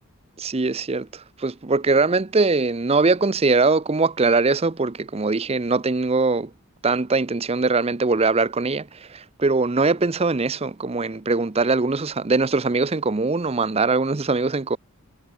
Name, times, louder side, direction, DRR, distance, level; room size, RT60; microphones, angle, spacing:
voice 1, 0.4-6.5 6.8-14.8, right 3 dB, 25° right, 0.6 m, -22 dB
head